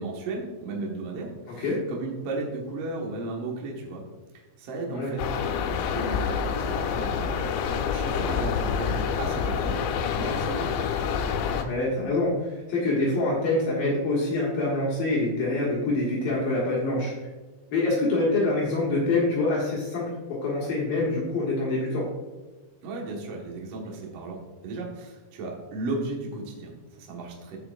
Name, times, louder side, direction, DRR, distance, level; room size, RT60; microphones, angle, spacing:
voice 1, 0.0-4.0 4.6-5.3 5.7-7.3 7.6-9.7 10.1-10.8 22.8-27.6, right 2 dB, 90° right, -1 dB, 1.3 m, -35 dB
Gase - Schwefelgase treten aus, 5.2-11.6, left 6 dB, 85° left, 2.6 m, -27 dB
voice 2, 11.5-17.1 17.7-22.1, left 2 dB, 60° left, -5 dB, 2.9 m, -25 dB
15.0 x 5.8 x 2.5 m, 1.3 s
omnidirectional pair, 5.4 m